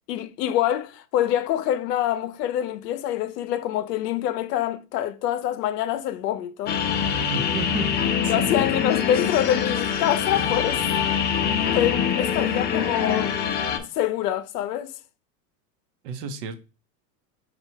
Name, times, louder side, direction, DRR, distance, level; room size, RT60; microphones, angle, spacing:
voice 1, 0.1-6.8 8.3-10.8 11.7-13.5 13.8-14.9, left 11 dB, 85° left, 0.6 m, -25 dB
sound 1, 6.7-13.8, left 7 dB, 25° left, 0.4 m, -24 dB
voice 2, 7.3-7.9 8.2-8.5 16.0-16.6, right 4 dB, 75° right, 0.8 m, -32 dB
4.4 x 2.4 x 4.4 m
hypercardioid pair, 105°, 48 cm